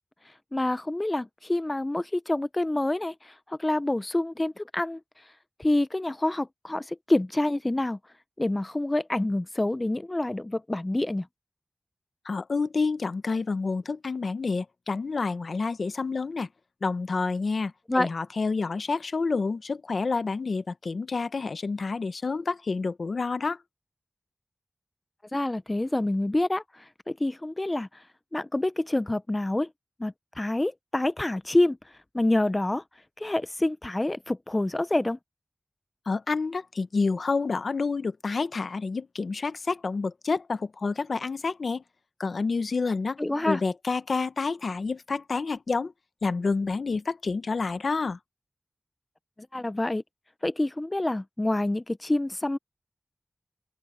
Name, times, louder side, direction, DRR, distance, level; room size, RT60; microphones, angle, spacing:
voice 1, 0.5-5.0 5.6-8.0 8.4-11.3 17.9-18.1 25.3-27.9 28.3-29.7 30.0-31.8 32.1-32.8 33.2-35.2 43.2-43.6 49.5-50.0 50.4-52.6, left 1 dB, 30° left, 0.6 m, -27 dB
voice 2, 12.2-16.5 16.8-23.6 36.1-41.8 42.2-43.2 43.5-45.9 46.2-48.2, left 4 dB, 90° left, 0.8 m, -28 dB
open air
cardioid pair, 45°, 0 cm